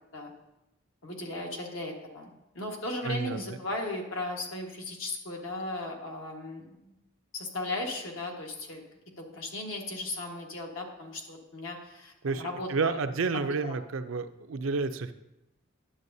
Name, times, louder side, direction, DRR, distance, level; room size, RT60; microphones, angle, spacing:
voice 1, 1.0-7.0 7.3-8.8 9.2-13.0 13.3-13.8, left 2 dB, 75° left, 1 dB, 1.5 m, -37 dB
voice 2, 3.0-3.6 12.2-15.1, right 4 dB, 70° right, 9 dB, 0.5 m, -30 dB
11.0 x 7.8 x 2.7 m, 0.90 s
head